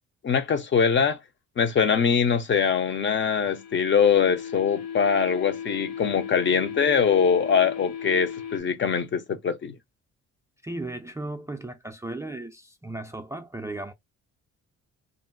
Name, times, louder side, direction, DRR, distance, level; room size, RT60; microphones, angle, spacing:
voice 1, 0.2-1.2 1.6-9.7, left 6 dB, 40° left, 0.5 m, -23 dB
sound 1, 2.7-8.6, left 8 dB, 65° left, 0.8 m, -37 dB
voice 2, 10.6-13.9, right 2 dB, 10° right, 0.4 m, -36 dB
2.5 x 2.0 x 3.6 m
cardioid pair, 90°, 30 cm